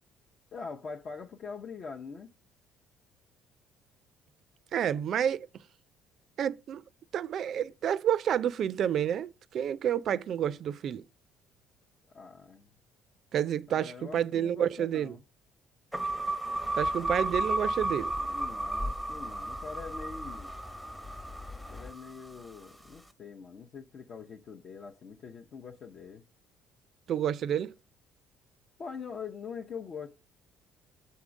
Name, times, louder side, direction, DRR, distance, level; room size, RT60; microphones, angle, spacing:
voice 1, 0.5-2.3 12.1-12.7 13.7-15.2 18.2-20.5 21.7-26.2 28.8-30.1, left 5 dB, 50° left, 0.6 m, -43 dB
voice 2, 4.7-5.5 6.4-6.8 7.1-11.0 13.3-15.2 16.7-18.1 27.1-27.8, right 9 dB, 55° right, 0.4 m, -29 dB
sound 1, 15.9-22.3, right 1 dB, ahead, 0.7 m, -33 dB
sound 2, 16.6-21.9, left 2 dB, 20° left, 1.0 m, -48 dB
7.0 x 3.7 x 6.2 m
cardioid pair, 100°, 0 cm